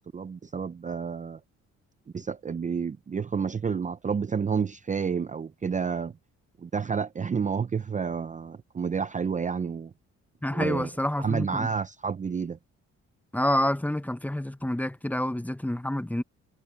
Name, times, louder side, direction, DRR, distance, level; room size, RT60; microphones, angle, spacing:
voice 1, 0.0-1.4 2.1-6.1 6.6-9.9 10.5-10.9 11.2-12.6, right 6 dB, 25° right, 0.6 m, -30 dB
voice 2, 10.4-11.7 13.3-16.2, left 1 dB, 5° left, 1.0 m, -28 dB
cardioid pair, 90°, 30 cm